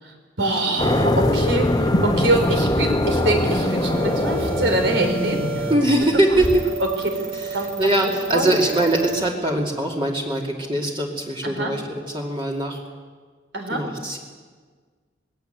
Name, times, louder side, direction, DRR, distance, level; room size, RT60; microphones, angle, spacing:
voice 1, 0.0-5.7 6.0-6.4 7.5-8.6 11.4-11.7 13.5-13.8, right 1 dB, 80° right, 4 dB, 4.2 m, -25 dB
sound 1, 0.8-6.6, left 1 dB, 20° left, 1.8 m, -23 dB
sound 2, 1.0-6.0, left 1 dB, 55° left, 1.4 m, -29 dB
sound 3, 3.0-9.2, right 4 dB, 65° right, 6.8 m, -32 dB
voice 2, 5.7-6.6 7.4-12.8 13.7-14.2, right 1 dB, 30° right, -1 dB, 2.5 m, -22 dB
20.0 x 17.0 x 9.2 m, 1.5 s
head